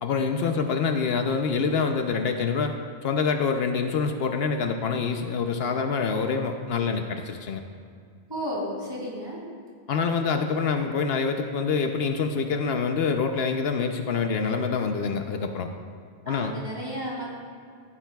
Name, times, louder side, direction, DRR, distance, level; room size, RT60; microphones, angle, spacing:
voice 1, 0.0-2.7 3.0-7.6 9.9-15.7 16.3-16.5, left 5 dB, 75° left, 5 dB, 0.9 m, -26 dB
voice 2, 8.3-9.4 16.3-17.3, equal, 25° right, -6 dB, 2.9 m, -33 dB
15.0 x 9.8 x 2.3 m, 2.3 s
omnidirectional pair, 1.0 m